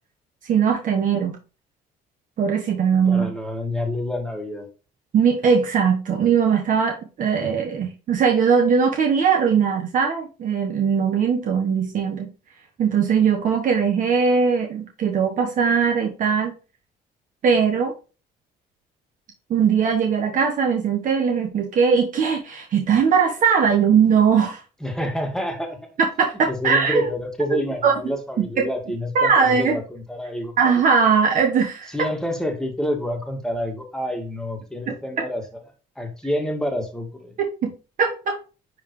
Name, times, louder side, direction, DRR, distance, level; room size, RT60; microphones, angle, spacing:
voice 1, 0.5-1.4 2.4-3.3 5.1-12.3 12.8-16.5 17.4-17.9 19.5-24.6 26.2-27.1 27.8-27.9 28.6-28.7 29.1-29.8 30.6-31.9 37.6-37.7 38.0-38.4, right 6 dB, 50° right, 1.2 m, -20 dB
voice 2, 3.1-4.7 24.8-25.8 26.5-30.5 31.9-35.6 36.0-37.4, left 1 dB, 5° left, 1.8 m, -28 dB
10.0 x 3.7 x 3.1 m
cardioid pair, 110°, 17 cm